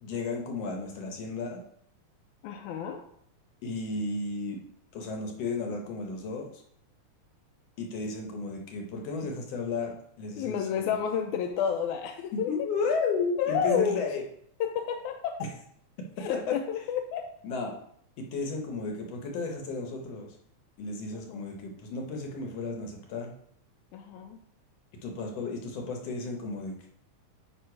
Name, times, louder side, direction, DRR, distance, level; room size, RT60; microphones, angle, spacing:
voice 1, 0.0-1.6 3.6-4.6 4.9-6.6 7.8-10.9 12.3-14.2 16.2-16.6 17.4-17.8 18.2-20.3 20.8-23.3 25.0-26.9, left 3 dB, 65° left, 1 dB, 1.8 m, -33 dB
voice 2, 2.4-3.0 10.4-12.5 13.4-14.0 14.6-15.5 16.2-17.2 21.1-21.4 23.9-24.4, left 8 dB, 85° left, 4 dB, 2.0 m, -30 dB
9.1 x 3.4 x 4.7 m, 0.69 s
omnidirectional pair, 3.4 m